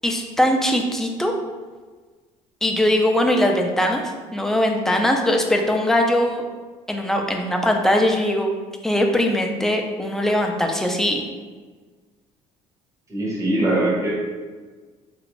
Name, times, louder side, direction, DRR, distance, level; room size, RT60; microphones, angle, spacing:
voice 1, 0.0-1.3 2.6-6.4 6.9-8.5 8.8-11.2, left 1 dB, 5° left, 2 dB, 0.4 m, -21 dB
voice 2, 13.1-14.1, right 1 dB, 20° right, -4 dB, 1.0 m, -21 dB
3.1 x 2.5 x 3.0 m, 1.4 s
cardioid pair, 105°, 13 cm